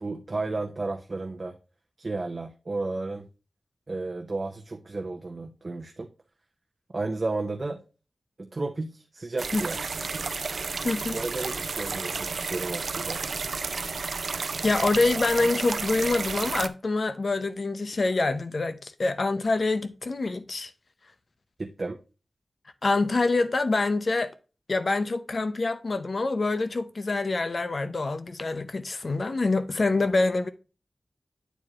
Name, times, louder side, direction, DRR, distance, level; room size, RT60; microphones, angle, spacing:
voice 1, 0.0-1.6 2.0-3.3 3.9-6.1 6.9-7.8 8.4-9.8 11.1-13.2 21.6-22.0, right 3 dB, 45° right, 0.7 m, -33 dB
sound 1, 9.4-16.7, right 4 dB, 80° right, 0.4 m, -32 dB
voice 2, 10.8-11.2 14.3-20.7 22.8-24.3 24.7-30.5, left 3 dB, 55° left, 0.7 m, -26 dB
9.0 x 4.6 x 2.4 m
wide cardioid pair, 95°, 0 cm